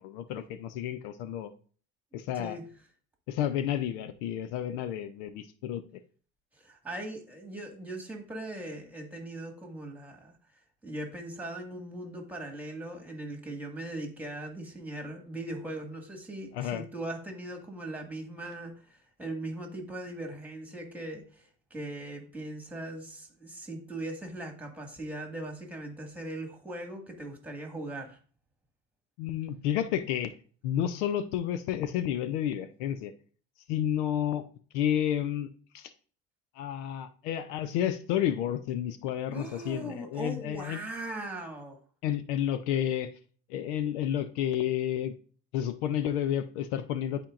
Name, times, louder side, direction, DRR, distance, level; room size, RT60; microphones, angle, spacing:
voice 1, 0.0-1.5 2.1-2.6 3.3-5.8 16.5-16.9 29.2-30.3 30.6-33.1 33.7-34.4 34.7-35.5 35.7-35.9 36.6-40.8 42.0-43.1 43.5-45.1 45.5-47.2, left 10 dB, 75° left, 13 dB, 0.7 m, -31 dB
voice 2, 6.6-10.3 10.8-28.2 39.3-41.8, right 1 dB, 5° right, 3 dB, 1.9 m, -39 dB
11.5 x 4.4 x 2.5 m, 0.42 s
supercardioid pair, 90°, 35 cm